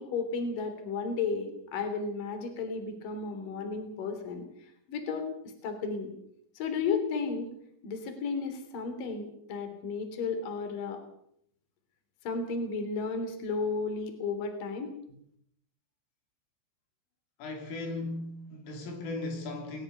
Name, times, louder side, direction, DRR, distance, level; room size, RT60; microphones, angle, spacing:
voice 1, 0.0-4.4 4.9-5.3 5.6-6.1 6.6-7.5 7.8-11.0 12.2-14.9, left 4 dB, 45° left, 7 dB, 4.6 m, -33 dB
voice 2, 17.4-19.8, left 2 dB, 80° left, 4 dB, 5.8 m, -37 dB
21.0 x 20.0 x 6.9 m, 0.69 s
omnidirectional pair, 5.8 m